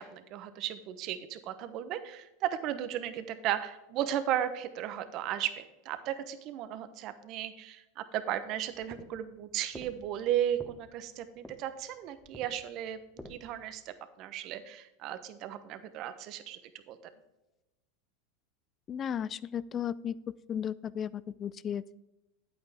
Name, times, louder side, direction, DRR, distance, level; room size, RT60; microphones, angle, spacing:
voice 1, 0.0-13.0 13.3-16.6 16.9-17.0, right 11 dB, 50° right, 12 dB, 0.9 m, -35 dB
sound 1, 8.7-13.8, left 1 dB, ahead, 1.1 m, -51 dB
voice 2, 18.9-20.2 20.5-22.0, left 8 dB, 35° left, 20 dB, 0.4 m, -35 dB
9.0 x 8.4 x 3.4 m, 0.99 s
hypercardioid pair, 100°, 0 cm